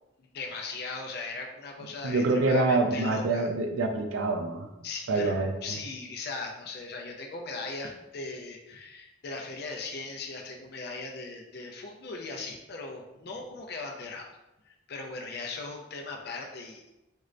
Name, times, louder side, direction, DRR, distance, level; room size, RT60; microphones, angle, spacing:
voice 1, 0.2-3.5 4.8-14.3 14.7-16.8, left 3 dB, 55° left, 1 dB, 0.5 m, -39 dB
voice 2, 2.0-4.7 5.1-5.8, right 2 dB, 85° right, 5 dB, 0.4 m, -26 dB
4.4 x 2.1 x 2.5 m, 0.96 s
head